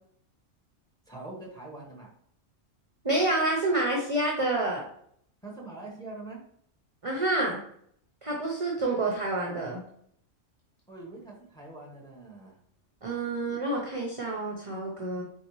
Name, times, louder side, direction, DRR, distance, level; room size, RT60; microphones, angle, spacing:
voice 1, 1.1-2.1 5.4-6.4 10.9-12.6, right 2 dB, 5° left, -2 dB, 1.0 m, -43 dB
voice 2, 3.0-4.8 7.0-7.6 8.2-9.8 13.0-15.2, right 2 dB, 35° right, -2 dB, 0.7 m, -28 dB
4.2 x 3.7 x 3.1 m, 0.67 s
omnidirectional pair, 1.3 m